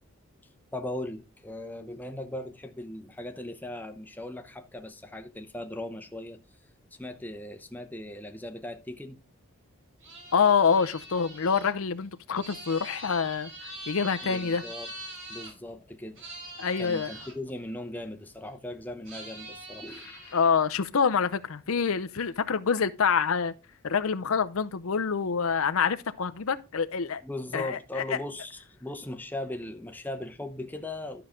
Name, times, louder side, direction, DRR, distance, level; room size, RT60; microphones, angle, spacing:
voice 1, 0.7-6.4 6.9-9.2 14.2-14.9 15.3-16.3 16.8-20.1 27.2-31.2, left 1 dB, 10° left, 0.8 m, -38 dB
sound 1, 10.0-15.5 16.1-17.3 19.0-20.5, right 1 dB, 60° right, 5.3 m, -43 dB
voice 2, 10.3-13.5 13.9-14.6 16.6-17.1 20.3-23.5 23.8-27.2 27.5-28.2, left 6 dB, 70° left, 0.6 m, -26 dB
12.0 x 5.8 x 3.7 m
head